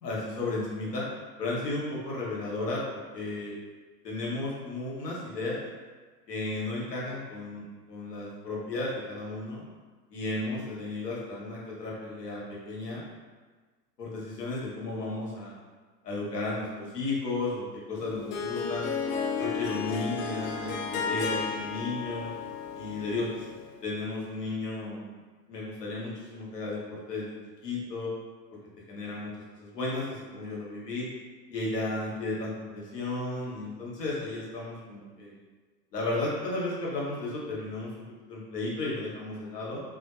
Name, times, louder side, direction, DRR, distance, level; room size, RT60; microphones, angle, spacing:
voice 1, 0.0-1.0 1.4-3.6 4.0-5.6 6.3-9.6 10.1-13.0 14.0-15.6 16.0-18.9 19.4-22.3 22.7-23.4 23.8-25.1 25.5-27.3 27.6-28.1 28.9-29.3 29.6-31.1 31.5-35.4 35.9-39.8, left 2 dB, 70° left, -5 dB, 1.1 m, -34 dB
Harp, 17.9-23.7, left 5 dB, 55° left, 0.5 m, -33 dB
3.0 x 2.7 x 2.4 m, 1.4 s
figure-of-eight pair, 95°, 50 cm